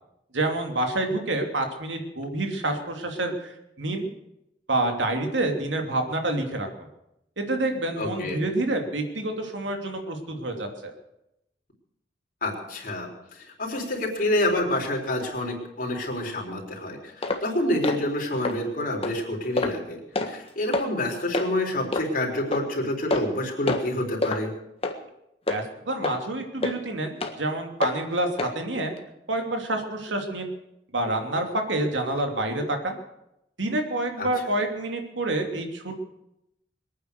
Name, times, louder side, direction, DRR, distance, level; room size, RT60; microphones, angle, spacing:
voice 1, 0.3-4.1 4.7-6.7 7.4-10.9 25.5-28.9 29.3-30.5 30.9-33.0 33.6-35.9, right 2 dB, 90° right, 4 dB, 2.8 m, -28 dB
voice 2, 8.0-8.4 12.4-24.5 34.2-34.3, left 1 dB, 50° left, 0 dB, 3.9 m, -28 dB
sound 1, 17.2-17.4 17.8-18.0 18.4-18.6 19.0-19.2 19.6-19.8 20.1-20.3 20.7-20.9 21.3-21.5 21.9-22.1 22.5-22.6 23.1-23.4 23.7-23.9 24.2-24.4 24.8-25.0 25.5-25.6 26.0-26.2 26.6-26.7 27.2-27.3 27.8-28.0 28.4-28.5 29.0-29.1, left 2 dB, 35° left, 1.6 m, -27 dB
22.5 x 9.4 x 6.7 m, 0.83 s
head